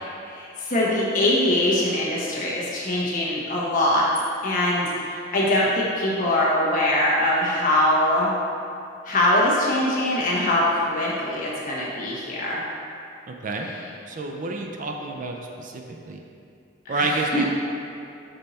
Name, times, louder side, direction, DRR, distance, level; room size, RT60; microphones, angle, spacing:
voice 1, 0.3-4.1 4.4-8.3 9.0-12.6 16.8-17.4, left 1 dB, 45° left, -5 dB, 1.2 m, -22 dB
voice 2, 13.3-13.7 14.1-16.2 16.9-17.5, right 3 dB, 45° right, 2 dB, 0.5 m, -29 dB
5.5 x 4.4 x 4.1 m, 2.6 s
head